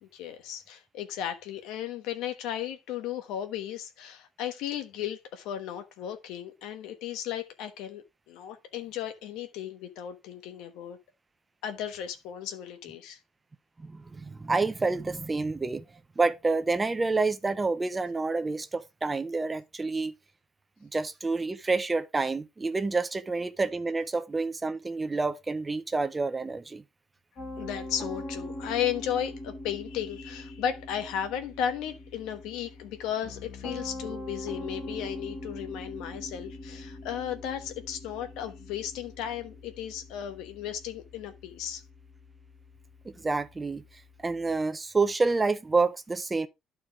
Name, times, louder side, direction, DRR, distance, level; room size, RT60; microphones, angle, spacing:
voice 1, 0.0-11.0 11.6-13.2 27.6-41.8, left 9 dB, 85° left, 1.2 m, -35 dB
voice 2, 13.8-15.8 16.2-20.1 20.8-26.8 43.0-43.8 44.2-46.5, right 3 dB, 15° right, 0.5 m, -28 dB
Piano, 27.4-44.5, left 1 dB, 35° left, 5.1 m, -42 dB
11.5 x 4.6 x 3.6 m
cardioid pair, 175°, 0 cm